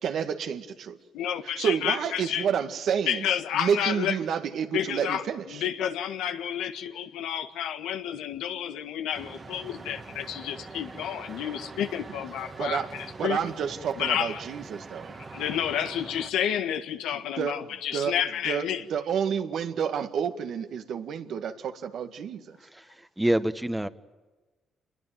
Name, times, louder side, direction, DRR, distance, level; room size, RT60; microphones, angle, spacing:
voice 1, 0.0-1.0 1.6-3.3 3.5-5.6 12.6-12.9 13.2-15.2 17.4-18.2 18.4-22.6, right 7 dB, 70° right, 2.0 m, -29 dB
voice 2, 1.1-2.5 3.1-4.2 4.7-5.2 5.5-13.4 14.0-14.4 15.3-18.8, left 9 dB, 90° left, 1.7 m, -30 dB
sound 1, 9.1-16.3, right 3 dB, 35° right, 1.8 m, -43 dB
voice 3, 22.6-23.9, right 1 dB, 10° right, 1.4 m, -27 dB
28.0 x 22.0 x 9.3 m
cardioid pair, 90°, 0 cm